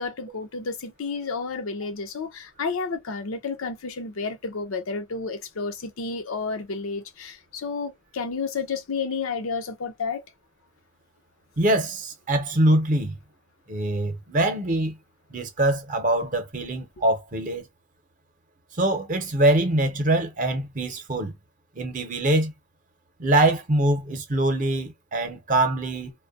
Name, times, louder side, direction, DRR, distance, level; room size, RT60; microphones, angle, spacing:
voice 1, 0.0-10.2, left 4 dB, 90° left, 0.6 m, -31 dB
voice 2, 11.6-13.1 13.7-14.9 15.3-17.6 18.8-21.3 21.8-22.5 23.2-26.1, right 1 dB, 40° right, 0.7 m, -23 dB
2.5 x 2.2 x 2.4 m
head